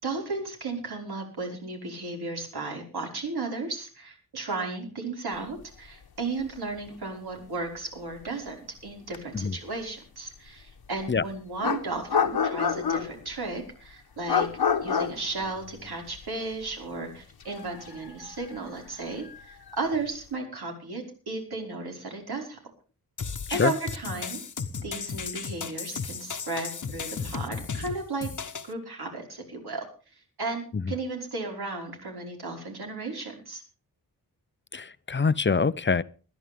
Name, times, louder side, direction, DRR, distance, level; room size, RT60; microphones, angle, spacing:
voice 1, 0.0-8.6 8.8-14.5 14.8-22.6 23.5-24.4 24.8-28.3 28.6-29.9 30.2-33.6, right 3 dB, 75° right, 5.4 m, -34 dB
sound 1, 6.4-6.5 6.8-6.9 9.1-9.2 11.0-11.1 11.6-13.3 14.3-16.2 16.5-16.7 17.4-19.7, left 6 dB, 70° left, 1.3 m, -28 dB
sound 2, 23.2-28.7, left 5 dB, 50° left, 1.2 m, -35 dB
voice 2, 34.7-36.0, left 5 dB, 30° left, 0.6 m, -25 dB
20.5 x 12.5 x 3.6 m
wide cardioid pair, 135°, 39 cm